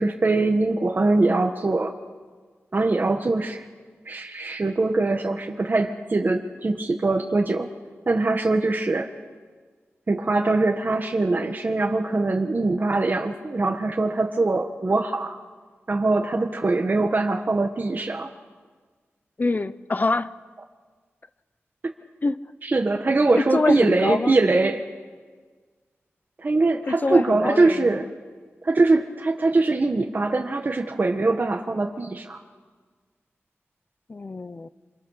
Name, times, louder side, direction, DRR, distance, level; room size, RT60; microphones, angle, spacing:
voice 1, 0.0-1.9 2.7-3.6 4.0-7.7 8.1-9.1 10.1-15.4 15.9-18.3 22.6-24.8 26.4-28.1 28.6-32.4, right 3 dB, 40° right, 1.5 m, -22 dB
voice 2, 19.4-20.3 22.2-22.4 23.5-24.4 26.9-28.0 34.1-34.7, left 3 dB, 40° left, 0.9 m, -25 dB
28.0 x 27.0 x 6.6 m
wide cardioid pair, 95°, 5 cm